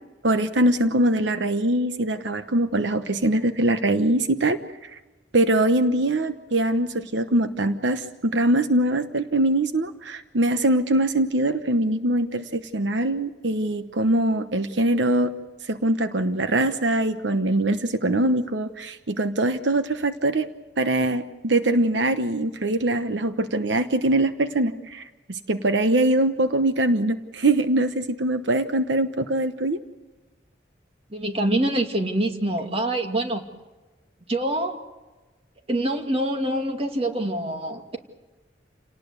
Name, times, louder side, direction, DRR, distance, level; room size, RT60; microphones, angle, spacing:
voice 1, 0.2-4.6 4.8-5.0 5.3-15.3 15.7-20.5 20.8-29.8, right 1 dB, 80° right, 9 dB, 1.1 m, -23 dB
voice 2, 31.1-33.4 34.3-34.8 35.7-38.0, right 1 dB, 35° right, 4 dB, 2.4 m, -25 dB
29.0 x 18.5 x 8.2 m, 1.2 s
head